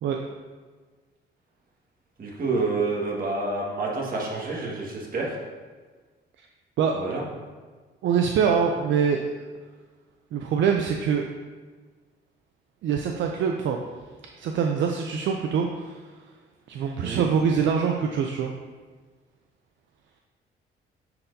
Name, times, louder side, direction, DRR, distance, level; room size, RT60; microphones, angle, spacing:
voice 1, 2.2-5.4 7.0-7.2 17.0-17.2, right 3 dB, 45° right, -2 dB, 1.6 m, -28 dB
voice 2, 8.0-9.2 10.3-11.3 12.8-13.8 14.4-16.0 16.7-18.5, right 6 dB, 70° right, 3 dB, 0.5 m, -24 dB
9.5 x 4.2 x 2.7 m, 1.4 s
cardioid pair, 90°, 20 cm